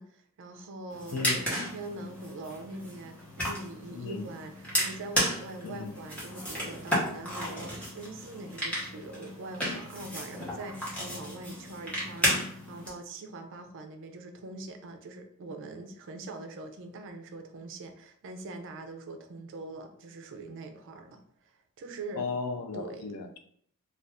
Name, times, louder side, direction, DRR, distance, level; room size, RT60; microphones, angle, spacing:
voice 1, 0.0-22.3 22.7-23.1, right 2 dB, 60° right, 0.4 m, -43 dB
sound 1, 0.9-12.9, equal, 5° left, 0.9 m, -33 dB
voice 2, 1.1-1.5 3.9-4.3 5.6-5.9 22.2-23.4, left 4 dB, 75° left, 0.4 m, -35 dB
2.5 x 2.3 x 3.4 m
head